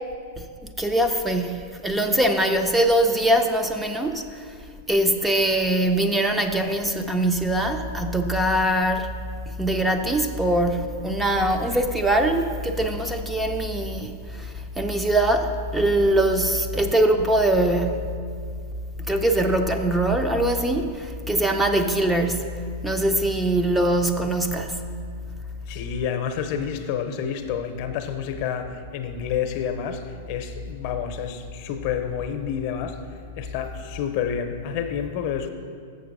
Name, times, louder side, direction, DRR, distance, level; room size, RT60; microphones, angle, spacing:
voice 1, 0.8-4.2 4.9-9.1 9.5-18.1 19.1-24.8, right 1 dB, 5° right, 5 dB, 0.5 m, -22 dB
voice 2, 25.7-33.0 33.4-35.5, left 8 dB, 55° left, 7 dB, 0.7 m, -29 dB
6.7 x 6.7 x 5.3 m, 2.2 s
hypercardioid pair, 120°, 0 cm